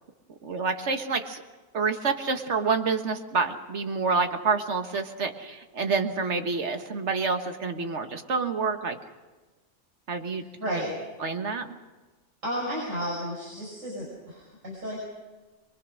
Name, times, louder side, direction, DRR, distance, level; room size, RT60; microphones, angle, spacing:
voice 1, 0.4-1.4 1.7-9.0 10.1-10.8 11.2-11.7, right 4 dB, 65° right, 6 dB, 1.7 m, -28 dB
voice 2, 10.6-11.0 12.4-15.0, equal, 85° right, -4 dB, 6.0 m, -32 dB
23.5 x 23.0 x 6.4 m, 1.2 s
omnidirectional pair, 1.3 m